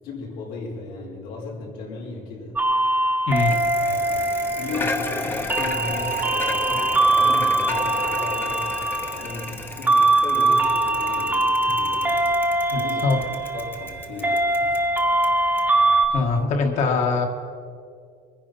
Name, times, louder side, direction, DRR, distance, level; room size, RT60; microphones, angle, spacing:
voice 1, 0.0-2.5 3.7-4.3 4.5-8.6 9.1-12.1 12.7-13.0 13.5-14.4, left 3 dB, 90° left, -2 dB, 4.5 m, -35 dB
sound 1, 2.6-16.1, right 2 dB, 10° right, 1.0 m, -22 dB
voice 2, 3.3-3.6 12.7-13.2 16.1-17.3, left 4 dB, 55° left, 4 dB, 1.8 m, -22 dB
Bicycle, 3.3-16.4, left 2 dB, 15° left, 0.8 m, -34 dB
23.0 x 9.9 x 5.6 m, 2.3 s
cardioid pair, 175°, 15 cm